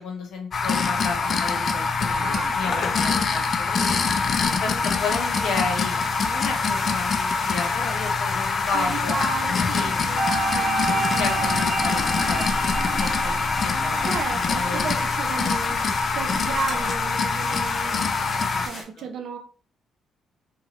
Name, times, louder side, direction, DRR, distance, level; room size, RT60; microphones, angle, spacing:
voice 1, 0.0-2.3 2.5-4.0 4.6-6.0 6.2-9.2 9.7-10.0 10.9-12.4 12.8-14.9 18.3-19.0, left 4 dB, 75° left, 3 dB, 0.9 m, -33 dB
sound 1, 0.5-18.7, left 4 dB, 50° left, 0.3 m, -24 dB
voice 2, 2.2-3.3 3.9-4.1 4.4-4.8 5.4-5.6 6.8-7.0 8.7-10.2 10.5-11.2 14.1-15.8 16.1-18.1 18.6-19.4, right 5 dB, 70° right, 5 dB, 0.6 m, -34 dB
sound 2, 5.0-18.8, left 1 dB, 20° left, 0.9 m, -36 dB
sound 3, 10.2-15.3, right 3 dB, 30° right, 1.2 m, -29 dB
2.9 x 2.2 x 3.0 m, 0.39 s
cardioid pair, 90°, 0 cm